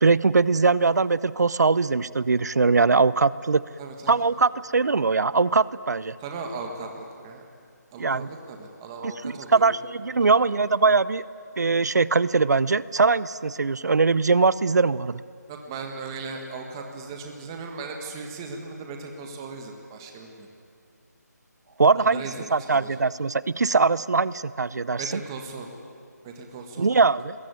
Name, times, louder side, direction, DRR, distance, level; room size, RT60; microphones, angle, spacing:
voice 1, 0.0-3.6 4.1-6.1 8.0-8.3 9.0-11.2 11.6-15.2 21.8-22.2 22.5-25.2 26.8-27.3, right 4 dB, 70° right, 19 dB, 0.7 m, -21 dB
voice 2, 3.8-4.2 6.2-7.4 7.9-9.7 10.2-10.5 15.5-20.5 21.9-23.0 25.0-25.7 26.2-26.9, right 4 dB, 15° right, 3 dB, 1.7 m, -37 dB
24.0 x 21.0 x 9.4 m, 2.3 s
figure-of-eight pair, 175°, 10 cm